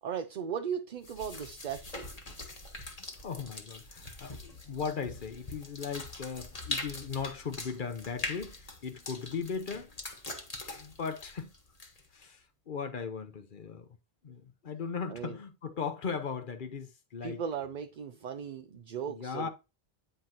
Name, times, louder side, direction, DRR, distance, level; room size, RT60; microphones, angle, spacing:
voice 1, 0.0-2.2 15.1-15.4 17.2-19.5, right 7 dB, 55° right, 0.6 m, -37 dB
sound 1, 1.0-12.2, left 2 dB, 40° left, 1.4 m, -43 dB
voice 2, 3.2-9.9 10.7-11.5 12.1-13.9 14.2-17.4 19.1-19.5, left 6 dB, 55° left, 1.0 m, -38 dB
9.2 x 5.6 x 2.9 m
omnidirectional pair, 1.0 m